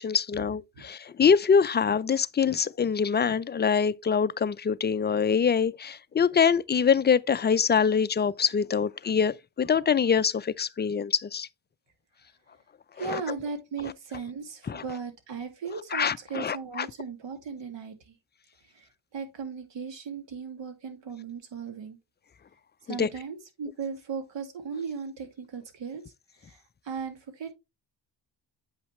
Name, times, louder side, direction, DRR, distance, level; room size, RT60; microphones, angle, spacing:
voice 1, 0.0-11.5 13.0-13.2 14.7-14.8 15.9-16.9 22.9-23.1, left 6 dB, 25° left, 0.4 m, -24 dB
voice 2, 13.0-18.2 18.7-18.9 19.1-22.0 22.9-26.0 26.4-27.5, right 5 dB, 70° right, 2.3 m, -37 dB
8.2 x 5.6 x 3.1 m
cardioid pair, 80°, 46 cm